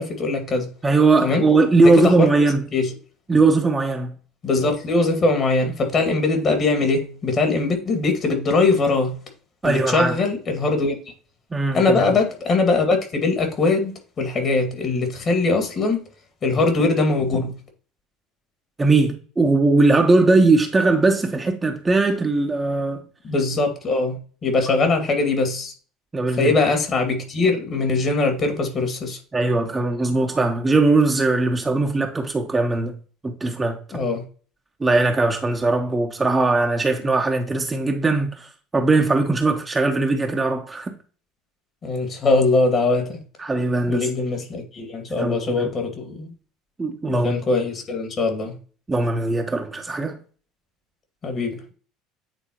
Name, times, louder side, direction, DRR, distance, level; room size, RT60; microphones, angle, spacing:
voice 1, 0.0-0.7 1.2-1.4 1.8-2.3 2.7-2.9 4.4-9.1 9.6-11.0 11.7-16.0 16.4-17.5 23.2-25.7 26.4-29.2 33.9-34.2 41.8-43.2 43.9-46.3 47.1-48.6 51.2-51.6, left 3 dB, 35° left, 2.0 m, -21 dB
voice 2, 0.8-2.6 3.3-4.1 9.6-10.1 11.5-12.1 18.8-23.0 26.1-26.5 29.3-32.9 33.2-33.8 34.8-41.0 43.4-44.1 45.1-45.7 46.8-47.3 48.9-50.2, right 3 dB, 20° right, 1.0 m, -19 dB
9.1 x 4.0 x 2.9 m
figure-of-eight pair, 65°, 0 cm